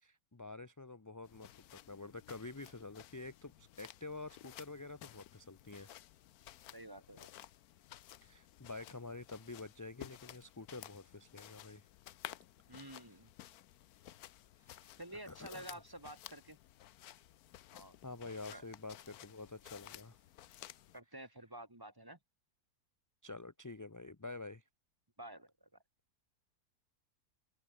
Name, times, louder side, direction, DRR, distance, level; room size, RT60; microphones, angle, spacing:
voice 1, 0.0-5.9 8.2-11.9 14.6-15.6 18.0-20.2 23.2-24.6, left 3 dB, 20° left, 0.6 m, -48 dB
sound 1, 1.2-21.0, left 13 dB, 75° left, 1.2 m, -55 dB
voice 2, 6.7-7.3 12.7-13.3 15.0-16.6 17.7-18.0 18.5-18.6 20.9-22.2 25.2-25.7, right 1 dB, 15° right, 1.9 m, -50 dB
omnidirectional pair, 1.6 m